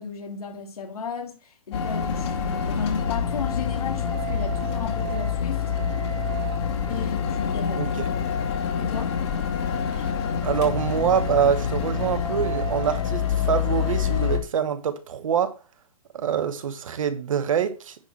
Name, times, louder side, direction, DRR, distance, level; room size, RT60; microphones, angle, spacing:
voice 1, 0.0-5.7 6.9-8.2 8.8-9.2, left 5 dB, 90° left, 2.3 m, -34 dB
sound 1, 1.7-14.4, left 6 dB, 45° left, 2.3 m, -26 dB
voice 2, 10.4-15.6 16.1-18.0, right 8 dB, 65° right, 1.3 m, -25 dB
10.5 x 4.3 x 4.7 m
hypercardioid pair, 160°, 19 cm